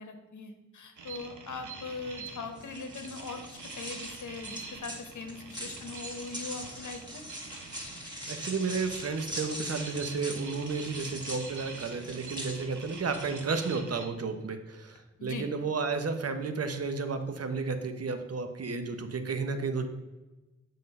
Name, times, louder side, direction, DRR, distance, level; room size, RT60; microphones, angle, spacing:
voice 1, 0.0-7.2 15.2-15.5, left 4 dB, 80° left, 6 dB, 1.0 m, -41 dB
sound 1, 1.0-14.0, right 4 dB, 85° right, 1.0 m, -46 dB
sound 2, 2.5-13.7, equal, 15° right, 2.0 m, -42 dB
voice 2, 8.3-19.9, right 4 dB, 55° right, 8 dB, 0.9 m, -32 dB
7.6 x 3.8 x 5.4 m, 1.1 s
cardioid pair, 55°, 29 cm